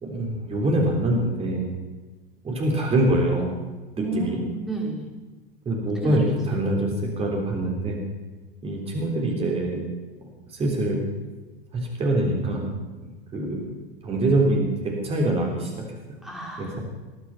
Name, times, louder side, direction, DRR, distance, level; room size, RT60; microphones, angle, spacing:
voice 1, 0.0-1.7 2.4-3.5 4.0-4.4 5.7-6.9 7.2-8.0 8.6-9.8 10.5-11.0 11.7-12.7 13.3-13.7 14.0-15.7 16.6-16.8, right 1 dB, 20° right, 0 dB, 3.5 m, -24 dB
voice 2, 4.0-5.1 6.0-6.2 6.5-6.9 16.2-16.8, right 2 dB, ahead, -1 dB, 3.4 m, -32 dB
20.0 x 11.5 x 5.8 m, 1.3 s
figure-of-eight pair, 90°, 29 cm